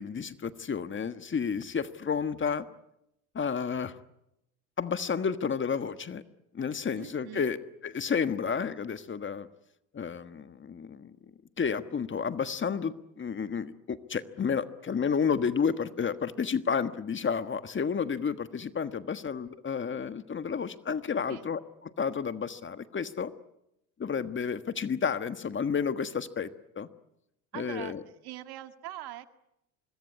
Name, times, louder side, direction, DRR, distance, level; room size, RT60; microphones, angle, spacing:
voice 1, 0.0-2.6 3.3-3.9 4.8-6.2 6.5-7.6 7.8-9.5 9.9-11.1 11.6-23.3 24.0-26.5 26.8-26.9 27.5-28.0, left 6 dB, 25° left, 11 dB, 1.5 m, -31 dB
voice 2, 7.0-7.4 21.3-21.5 27.5-29.3, right 14 dB, 55° right, 9 dB, 2.0 m, -43 dB
26.0 x 20.5 x 9.7 m, 0.84 s
supercardioid pair, 95°, 46 cm